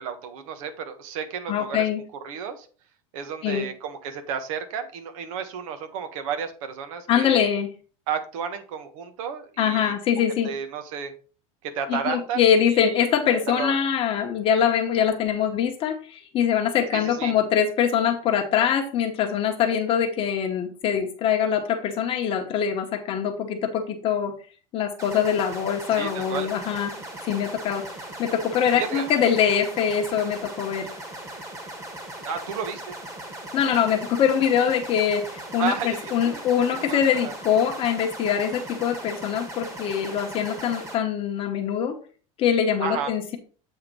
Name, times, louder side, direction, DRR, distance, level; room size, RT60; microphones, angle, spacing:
voice 1, 0.0-1.9 2.2-2.7 3.1-7.4 8.1-11.1 11.6-13.0 13.6-13.8 16.9-17.4 25.9-26.5 28.7-29.1 32.2-33.0 35.6-36.4 36.7-37.3 42.8-43.1, right 7 dB, 75° right, 8 dB, 1.3 m, -32 dB
voice 2, 1.5-2.0 3.4-3.7 7.1-7.7 9.6-10.5 11.9-24.3 24.7-26.9 27.2-27.8 28.2-30.9 33.5-42.0 42.4-43.4, left 8 dB, 30° left, 3 dB, 1.0 m, -23 dB
sound 1, 25.0-41.0, right 1 dB, 15° right, 1.5 m, -38 dB
8.1 x 3.6 x 5.3 m, 0.39 s
supercardioid pair, 160°, 18 cm